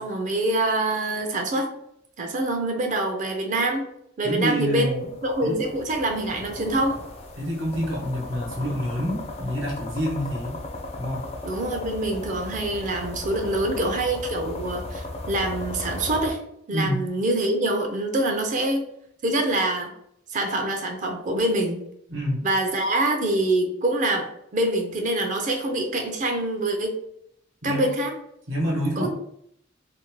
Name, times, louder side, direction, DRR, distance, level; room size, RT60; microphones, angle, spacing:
voice 1, 0.0-1.7 2.2-3.9 4.2-7.0 11.4-16.4 16.7-18.9 19.2-19.9 20.3-21.8 22.4-27.0 27.6-28.1 29.0-29.1, right 1 dB, 40° right, 3 dB, 0.4 m, -25 dB
voice 2, 4.2-5.0 5.4-5.6 7.4-10.6 11.0-11.2 16.7-17.0 22.1-22.4 27.6-27.8 28.5-29.1, equal, 85° right, -3 dB, 1.0 m, -27 dB
sound 1, 4.7-16.3, left 2 dB, 30° left, 0.3 m, -36 dB
2.6 x 2.1 x 3.0 m, 0.72 s
head